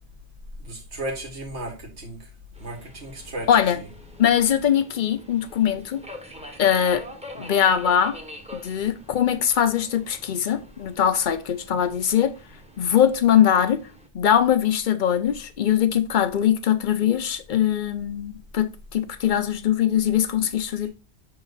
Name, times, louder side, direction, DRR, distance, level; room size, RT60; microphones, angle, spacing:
voice 1, 0.6-2.2 2.6-3.5, right 1 dB, 75° right, 1.9 m, -34 dB
Subway metro underground, 2.5-14.1, left 1 dB, 5° right, 0.9 m, -44 dB
voice 2, 3.5-3.8 4.2-6.0 6.6-7.0 7.4-8.2 8.5-12.3 12.8-13.8 14.1-20.9, left 9 dB, 50° left, 0.7 m, -21 dB
6.7 x 3.9 x 4.0 m
omnidirectional pair, 1.2 m